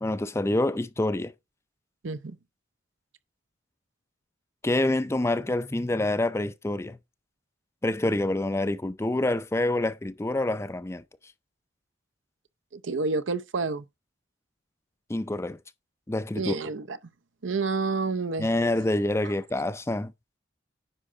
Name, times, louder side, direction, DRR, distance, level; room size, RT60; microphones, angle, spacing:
voice 1, 0.0-1.3 4.6-7.0 7.8-11.0 15.1-15.6 16.1-16.6 18.4-20.1, left 2 dB, 15° left, 0.4 m, -27 dB
voice 2, 2.0-2.4 12.7-13.8 16.4-17.0 17.4-18.5, right 4 dB, 75° right, 0.7 m, -29 dB
10.0 x 5.5 x 3.7 m
head